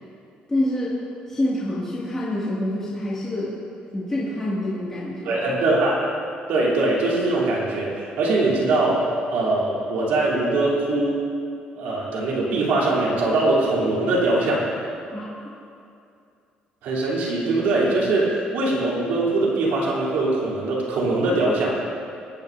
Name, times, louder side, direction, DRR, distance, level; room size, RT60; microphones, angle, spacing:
voice 1, 0.5-0.9 1.3-3.5 3.9-5.4 15.1-15.3, left 1 dB, 15° left, -9 dB, 2.2 m, -26 dB
voice 2, 5.2-6.0 6.5-9.0 9.3-11.2 11.7-14.6 16.8-21.7, right 2 dB, 85° right, -6 dB, 3.4 m, -22 dB
21.5 x 9.9 x 2.7 m, 2.5 s
cardioid pair, 155°, 3 cm